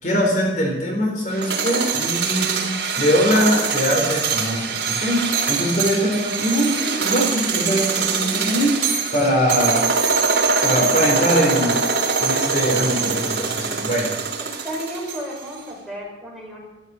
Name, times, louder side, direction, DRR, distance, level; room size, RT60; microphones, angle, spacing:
voice 1, 0.0-8.8 9.1-9.8 10.6-11.8 12.2-14.2, equal, 40° left, 0 dB, 4.1 m, -22 dB
sound 1, 1.3-15.4, right 5 dB, 70° right, 4.0 m, -23 dB
voice 2, 14.6-16.6, equal, ahead, -3 dB, 5.3 m, -33 dB
13.5 x 13.0 x 7.8 m, 1.1 s
head